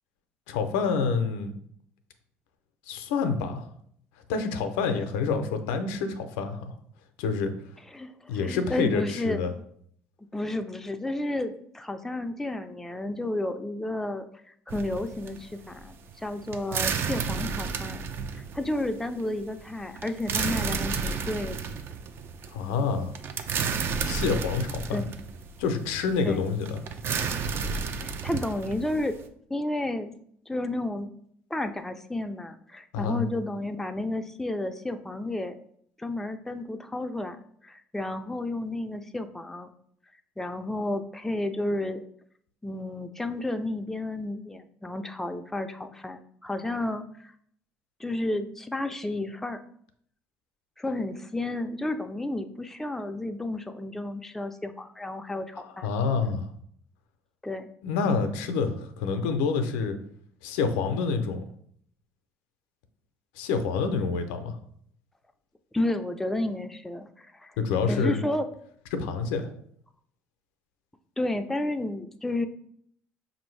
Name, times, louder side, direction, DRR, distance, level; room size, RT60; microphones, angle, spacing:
voice 1, 0.5-1.6 2.9-3.7 4.3-6.7 7.2-7.5 8.3-9.5 22.5-23.1 24.0-25.0 25.6-26.8 32.9-33.2 55.6-56.5 57.8-60.0 60.4-61.4 63.4-64.6 67.6-68.2 68.9-69.5, left 5 dB, 90° left, 8 dB, 0.5 m, -27 dB
voice 2, 7.9-9.6 10.3-14.3 14.7-18.0 18.3-21.6 24.9-25.1 26.2-26.4 28.0-29.2 29.5-30.1 30.5-31.1 31.5-35.6 36.0-39.7 40.4-42.0 42.6-47.3 48.0-49.6 50.8-55.9 57.4-57.7 65.7-67.5 67.9-68.5 71.2-72.5, left 1 dB, 5° left, 7 dB, 0.4 m, -32 dB
sound 1, 14.7-29.2, right 5 dB, 50° right, 0.5 m, -32 dB
5.3 x 2.6 x 3.1 m, 0.65 s
supercardioid pair, 85°, 5 cm